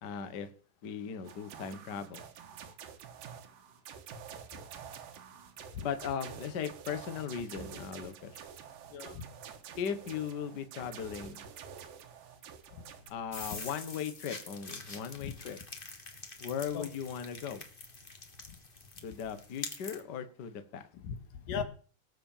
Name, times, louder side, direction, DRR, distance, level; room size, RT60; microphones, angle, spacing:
voice 1, 0.0-0.5 0.8-2.2 5.8-8.4 9.8-11.4 13.1-15.6 16.4-17.6 19.0-20.8, left 7 dB, 55° left, 1.1 m, -38 dB
sound 1, 1.2-13.1, right 7 dB, 80° right, 3.1 m, -48 dB
voice 2, 8.9-9.4 15.2-15.3 16.7-16.9 20.9-21.6, left 6 dB, 80° left, 3.2 m, -38 dB
sound 2, 13.3-20.0, left 3 dB, 35° left, 0.9 m, -46 dB
19.0 x 6.8 x 7.3 m
omnidirectional pair, 3.9 m